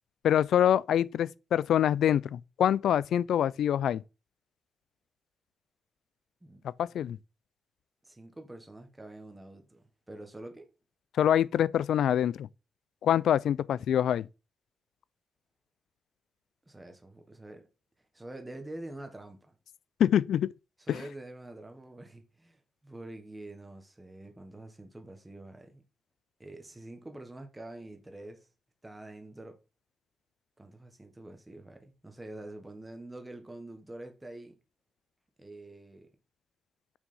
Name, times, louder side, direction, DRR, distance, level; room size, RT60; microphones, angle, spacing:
voice 1, 0.2-4.0 6.6-7.2 11.2-12.5 13.0-14.3 20.0-20.5 20.9-21.0, left 10 dB, 65° left, 0.4 m, -25 dB
voice 2, 8.0-10.7 16.6-17.7 18.1-19.6 20.8-25.8 26.4-28.5 28.8-29.6 30.6-34.6 35.4-36.1, right 1 dB, 10° right, 1.3 m, -46 dB
6.4 x 6.1 x 5.5 m
wide cardioid pair, 170°, 0 cm